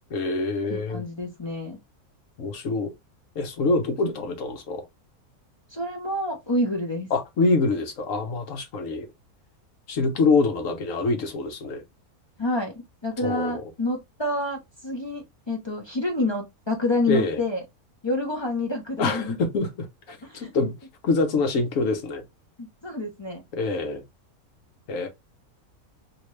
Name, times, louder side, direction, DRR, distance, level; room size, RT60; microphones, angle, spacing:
voice 1, 0.1-1.0 2.4-2.9 3.4-4.9 7.1-9.1 9.9-11.8 13.2-13.6 17.1-17.4 19.0-19.7 20.1-20.7 21.0-22.2 23.5-24.0 24.9-25.1, left 3 dB, 65° left, 1.1 m, -25 dB
voice 2, 0.7-1.8 5.7-7.1 12.4-17.6 18.0-19.4 20.2-20.5 22.6-23.4, left 1 dB, 35° left, 0.4 m, -28 dB
2.9 x 2.8 x 3.0 m
omnidirectional pair, 1.6 m